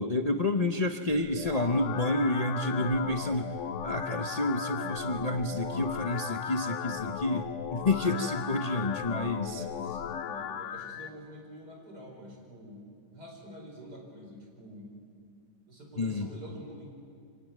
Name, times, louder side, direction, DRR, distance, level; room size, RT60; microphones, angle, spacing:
voice 1, 0.0-3.5 3.8-9.6 16.0-16.3, left 2 dB, 35° left, 5 dB, 0.7 m, -29 dB
sound 1, 1.1-11.1, left 8 dB, 55° left, 1.0 m, -36 dB
voice 2, 9.5-12.8 13.1-14.9 15.7-16.9, equal, 70° right, 0 dB, 5.2 m, -47 dB
25.0 x 18.0 x 9.3 m, 2.2 s
omnidirectional pair, 1.8 m